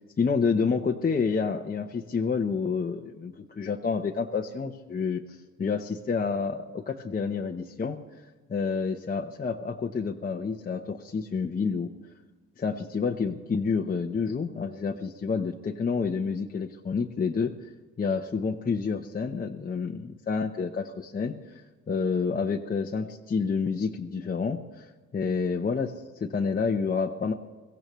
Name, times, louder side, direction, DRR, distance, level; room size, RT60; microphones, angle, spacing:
voice 1, 0.2-8.0 8.5-11.9 12.6-17.5 18.0-27.3, left 5 dB, 30° left, 2 dB, 0.9 m, -29 dB
23.0 x 15.5 x 3.1 m, 1.4 s
cardioid pair, 90°, 30 cm